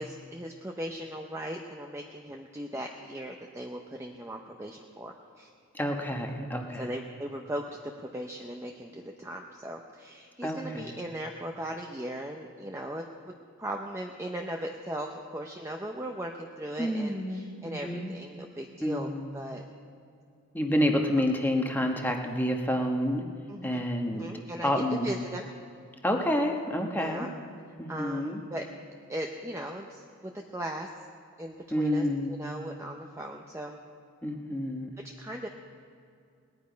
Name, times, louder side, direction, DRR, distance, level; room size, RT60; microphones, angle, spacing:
voice 1, 0.0-5.5 6.8-13.3 13.6-19.6 23.5-23.8 24.1-25.5 26.9-27.3 27.6-28.6 29.1-30.9 31.4-33.8 35.2-35.5, right 1 dB, 15° right, 2 dB, 0.6 m, -38 dB
voice 2, 5.7-6.9 10.4-10.9 16.8-18.1 18.8-19.3 20.5-23.2 23.6-24.3 24.6-25.1 26.0-27.3 27.8-28.4 31.7-32.4 34.2-34.9, equal, 10° left, 2 dB, 1.1 m, -29 dB
19.5 x 10.5 x 5.1 m, 2.4 s
head